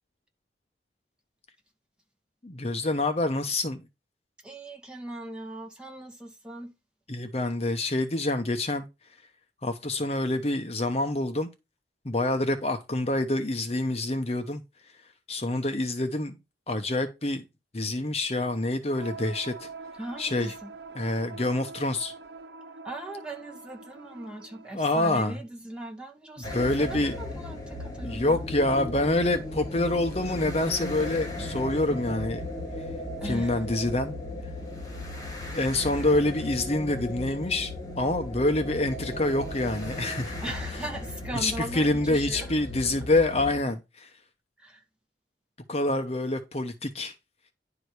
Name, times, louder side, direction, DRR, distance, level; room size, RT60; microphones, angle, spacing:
voice 1, 2.4-3.8 7.1-8.9 9.6-11.5 12.0-14.6 15.3-16.4 16.7-17.4 17.7-19.7 20.2-20.5 21.0-22.1 24.7-25.4 26.5-27.1 28.0-32.5 33.2-34.2 35.5-37.7 38.0-40.3 41.3-44.1 45.7-47.1, left 2 dB, 35° left, 0.9 m, -27 dB
voice 2, 4.4-6.7 20.0-20.7 22.8-28.4 33.2-33.6 35.4-35.6 40.4-42.5 44.6-44.8, right 1 dB, 5° right, 2.0 m, -39 dB
sound 1, 18.9-24.7, right 4 dB, 65° right, 0.9 m, -44 dB
sound 2, 26.4-43.6, left 1 dB, 20° left, 2.4 m, -36 dB
10.5 x 4.9 x 4.8 m
head